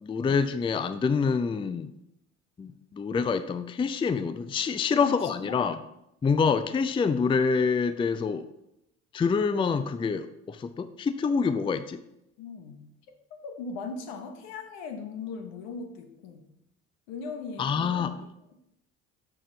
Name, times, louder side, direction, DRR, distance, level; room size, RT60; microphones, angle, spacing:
voice 1, 0.0-1.9 2.6-5.8 6.2-8.5 9.1-12.0 17.6-18.2, left 5 dB, 15° left, 12 dB, 0.4 m, -26 dB
voice 2, 5.0-5.5 12.4-16.5 17.1-18.3, left 4 dB, 75° left, 6 dB, 1.1 m, -39 dB
6.8 x 6.1 x 3.9 m, 0.82 s
hypercardioid pair, 60°, 36 cm